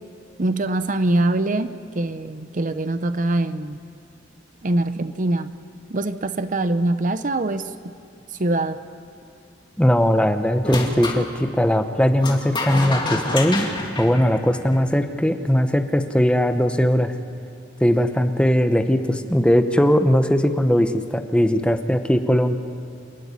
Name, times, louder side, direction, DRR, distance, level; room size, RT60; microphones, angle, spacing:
voice 1, 0.4-3.8 4.6-5.5 5.9-7.6 8.4-8.8, right 2 dB, 45° right, 11 dB, 0.8 m, -23 dB
voice 2, 9.8-17.1 17.8-22.6, equal, 5° left, 7 dB, 1.0 m, -19 dB
sound 1, 10.6-11.2 12.2-14.9, left 2 dB, 25° left, 2.6 m, -27 dB
28.5 x 14.5 x 9.7 m, 2.6 s
head